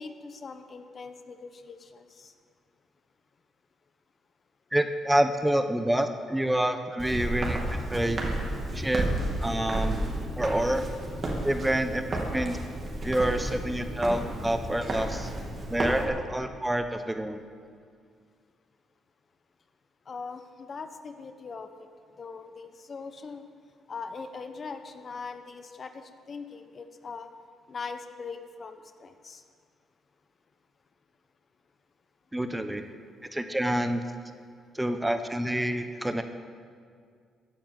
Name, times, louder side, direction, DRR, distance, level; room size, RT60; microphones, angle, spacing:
voice 1, 0.0-2.3 20.1-21.7 22.2-23.4 23.9-27.3 27.7-29.4, left 4 dB, 45° left, 8 dB, 1.1 m, -41 dB
voice 2, 4.7-7.6 7.9-8.2 8.7-9.1 9.4-10.0 10.4-10.9 11.4-12.6 13.0-15.3 15.7-17.4 32.3-32.8 33.3-34.0 34.7-36.2, right 1 dB, 10° right, 8 dB, 0.9 m, -27 dB
Walk footsteps, 7.0-16.0, right 1 dB, 40° right, 3.3 m, -32 dB
15.5 x 9.4 x 7.8 m, 2.1 s
cardioid pair, 90°, 0 cm